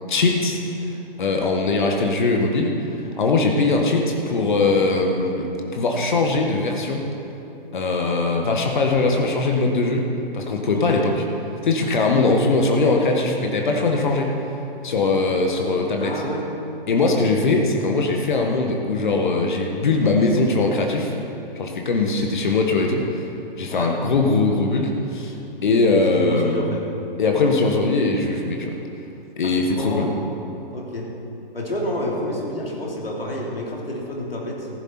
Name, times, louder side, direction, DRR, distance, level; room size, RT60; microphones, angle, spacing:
voice 1, 0.1-0.6 1.2-2.7 3.2-5.5 5.7-7.0 7.7-10.1 10.3-11.1 11.6-14.4 14.8-16.2 16.9-21.1 21.6-23.2 23.6-25.3 25.6-26.6 27.2-28.8 29.4-30.1, left 3 dB, 55° left, 2 dB, 1.6 m, -21 dB
voice 2, 10.7-11.1 16.0-16.5 23.7-23.9 26.2-26.8 29.4-30.1 30.7-31.1 31.5-34.7, left 1 dB, 75° left, -3 dB, 3.1 m, -29 dB
14.5 x 12.0 x 4.5 m, 2.9 s
figure-of-eight pair, 120°, 29 cm